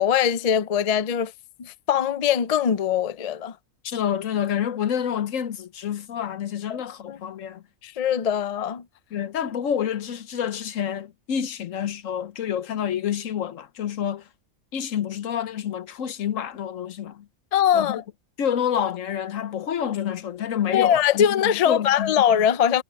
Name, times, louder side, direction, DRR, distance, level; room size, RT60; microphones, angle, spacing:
voice 1, 0.0-1.3 1.6-3.6 6.7-6.8 7.1-7.2 7.8-8.8 17.5-18.0 20.7-22.8, left 9 dB, 55° left, 0.4 m, -22 dB
voice 2, 3.8-7.6 9.1-14.2 14.7-17.3 17.7-18.0 18.4-22.1, left 9 dB, 75° left, 1.2 m, -28 dB
omnidirectional pair, 1.4 m